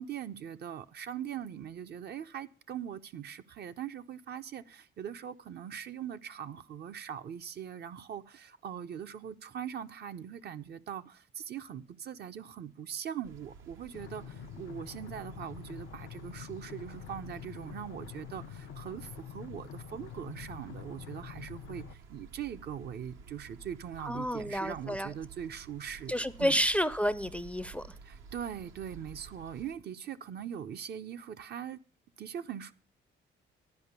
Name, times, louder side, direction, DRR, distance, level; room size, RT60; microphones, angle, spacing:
voice 1, 0.0-26.6 28.0-31.8 32.2-32.7, right 9 dB, 55° right, 0.6 m, -41 dB
sound 1, 13.2-29.7, right 5 dB, 80° right, 1.0 m, -52 dB
sound 2, 13.9-21.9, left 11 dB, 70° left, 0.5 m, -46 dB
voice 2, 24.0-25.1 26.1-27.8, equal, 5° left, 0.4 m, -30 dB
10.5 x 5.2 x 8.1 m
cardioid pair, 90°, 20 cm